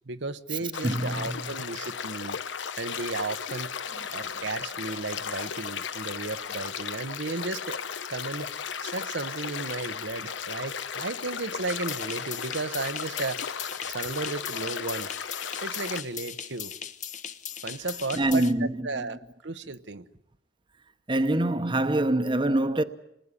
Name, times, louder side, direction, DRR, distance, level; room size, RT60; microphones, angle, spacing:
voice 1, 0.1-3.7 4.1-7.8 8.1-8.5 8.8-13.4 13.8-15.1 15.6-16.7 17.6-20.1, right 3 dB, 75° right, 1.0 m, -34 dB
sound 1, 0.7-16.0, left 7 dB, 85° left, 1.0 m, -35 dB
voice 2, 0.8-1.4 18.2-18.7 21.1-22.8, right 1 dB, 25° right, 1.0 m, -24 dB
sound 2, 11.7-18.5, left 9 dB, 40° left, 1.1 m, -39 dB
28.5 x 20.5 x 9.9 m
head